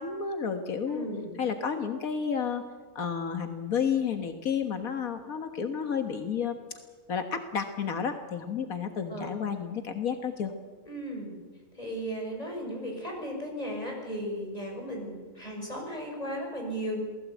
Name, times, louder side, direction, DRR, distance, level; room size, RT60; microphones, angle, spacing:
voice 1, 0.0-1.1 1.4-2.6 3.0-6.6 7.1-10.5, left 6 dB, 85° left, 7 dB, 1.9 m, -31 dB
voice 2, 0.8-1.3 9.1-9.4 10.8-11.3 11.7-17.0, equal, 25° left, 1 dB, 6.7 m, -36 dB
27.5 x 19.5 x 8.3 m, 1.4 s
omnidirectional pair, 1.4 m